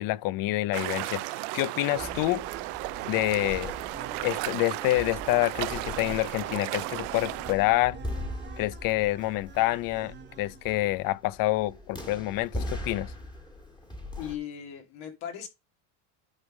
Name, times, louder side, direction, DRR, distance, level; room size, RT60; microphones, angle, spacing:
voice 1, 0.0-2.4 3.0-3.7 4.2-8.0 8.6-13.1, left 18 dB, 45° left, 0.4 m, -27 dB
sound 1, 0.7-7.5, right 23 dB, 75° right, 0.6 m, -35 dB
sound 2, 1.6-10.9, right 7 dB, 20° right, 1.0 m, -48 dB
sound 3, 2.0-14.4, left 1 dB, 10° left, 1.5 m, -41 dB
voice 2, 14.2-15.5, left 9 dB, 70° left, 2.5 m, -38 dB
9.8 x 3.6 x 6.3 m
cardioid pair, 135°, 49 cm